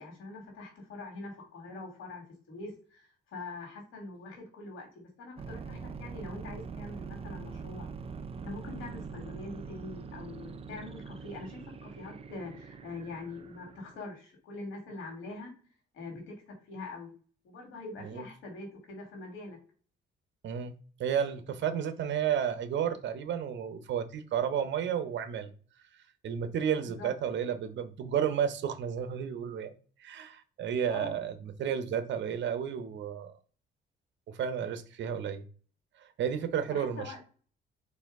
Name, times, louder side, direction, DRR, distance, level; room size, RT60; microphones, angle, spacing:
voice 1, 0.0-7.9 8.4-15.5 15.9-17.1 17.4-19.6 26.8-27.1 30.9-31.1 36.7-37.2, left 3 dB, 85° left, 2 dB, 1.9 m, -44 dB
sound 1, 5.4-14.0, right 5 dB, 30° right, 0.5 m, -43 dB
voice 2, 20.4-25.5 26.2-29.7 30.0-33.4 34.3-35.4 36.0-37.2, right 8 dB, 65° right, 10 dB, 0.8 m, -32 dB
4.2 x 2.7 x 3.6 m, 0.41 s
cardioid pair, 90°, 20 cm